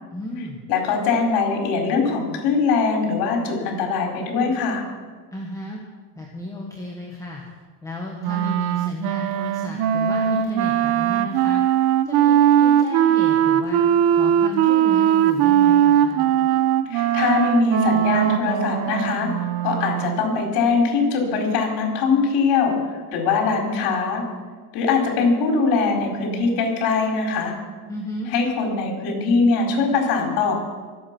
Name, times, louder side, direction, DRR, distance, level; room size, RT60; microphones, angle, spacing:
voice 1, 0.1-0.6 5.3-5.8 6.1-7.4 7.8-11.6 12.0-13.8 14.1-16.3 27.9-28.3, left 1 dB, 5° left, -2 dB, 1.2 m, -33 dB
voice 2, 0.7-4.8 16.9-19.3 19.6-22.7 23.1-24.2 24.7-27.5 28.3-30.5, left 4 dB, 60° left, 1 dB, 4.4 m, -21 dB
Wind instrument woodwind instrument, 8.2-20.3, right 10 dB, 50° right, 0.9 m, -19 dB
25.0 x 8.3 x 6.1 m, 1.5 s
cardioid pair, 175°, 48 cm